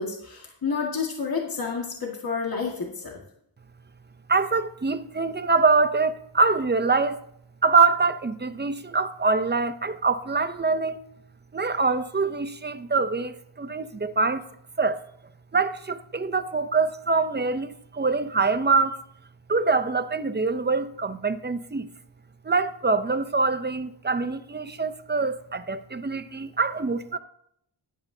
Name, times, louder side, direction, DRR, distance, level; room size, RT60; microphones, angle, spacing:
voice 1, 0.0-3.1, left 5 dB, 45° left, 1.9 m, -30 dB
voice 2, 4.3-7.2 7.6-11.0 11.5-14.4 14.8-15.0 15.5-19.0 19.5-21.9 22.4-27.2, right 4 dB, 20° right, 0.6 m, -24 dB
14.5 x 11.0 x 2.8 m
wide cardioid pair, 90°, 48 cm